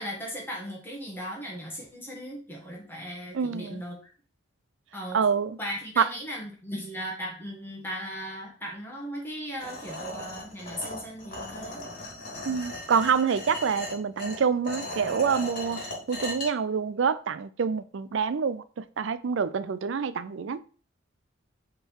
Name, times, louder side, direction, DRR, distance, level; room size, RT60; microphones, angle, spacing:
voice 1, 0.0-4.0 4.9-5.2 5.6-11.8, equal, 10° left, 1.8 m, -37 dB
voice 2, 3.3-3.8 5.1-5.6 6.0-6.1 12.5-20.6, right 6 dB, 65° right, 0.4 m, -26 dB
sound 1, 9.6-16.5, left 1 dB, 45° left, 3.0 m, -38 dB
5.3 x 3.9 x 4.6 m
head